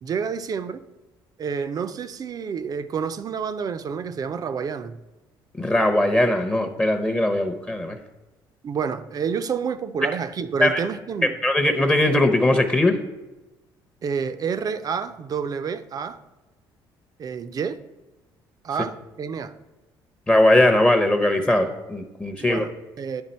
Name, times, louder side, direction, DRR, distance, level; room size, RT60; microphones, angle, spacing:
voice 1, 0.0-0.8 1.4-5.0 8.6-11.3 14.0-16.2 17.2-17.8 18.6-19.5 22.4-23.2, right 6 dB, 45° right, 0.5 m, -29 dB
voice 2, 5.6-8.0 10.6-10.8 11.4-13.0 20.3-22.7, left 1 dB, 15° left, 0.7 m, -20 dB
10.5 x 3.6 x 4.3 m
supercardioid pair, 85°, 9 cm